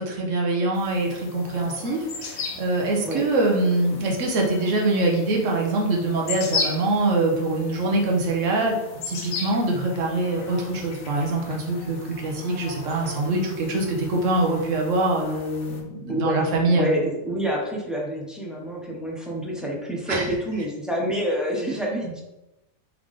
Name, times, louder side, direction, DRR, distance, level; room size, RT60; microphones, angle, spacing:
voice 1, 0.0-8.8 9.0-17.0 20.1-20.3, right 2 dB, 65° right, 0 dB, 1.2 m, -24 dB
sound 1, 0.7-15.8, left 4 dB, 60° left, 1.0 m, -37 dB
voice 2, 16.1-22.2, equal, ahead, -3 dB, 0.4 m, -27 dB
3.7 x 3.3 x 3.6 m, 0.96 s
omnidirectional pair, 1.5 m